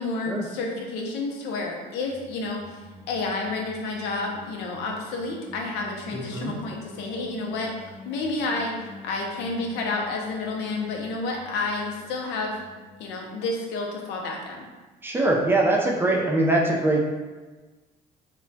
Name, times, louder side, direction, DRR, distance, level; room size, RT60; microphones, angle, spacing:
voice 1, 0.0-2.8 3.1-7.7 8.0-8.8 9.0-12.6 13.0-14.7, left 3 dB, 85° left, 0 dB, 0.6 m, -30 dB
Singing, 2.0-13.2, equal, 85° right, 0.5 m, -47 dB
voice 2, 6.1-6.6 15.0-17.0, right 2 dB, 15° right, -1 dB, 0.4 m, -22 dB
2.2 x 2.2 x 3.9 m, 1.3 s
cardioid pair, 110°, 17 cm